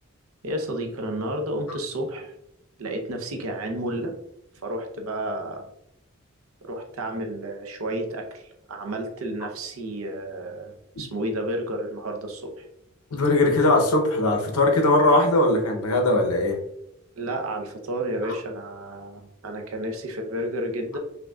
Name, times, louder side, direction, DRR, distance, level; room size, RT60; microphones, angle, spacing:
voice 1, 0.4-2.3 2.8-4.1 4.6-5.7 6.6-12.7 17.2-21.0, right 1 dB, 75° right, 3 dB, 0.7 m, -31 dB
voice 2, 13.1-16.6, left 2 dB, 90° left, 2 dB, 0.9 m, -20 dB
5.6 x 2.6 x 2.4 m, 0.80 s
head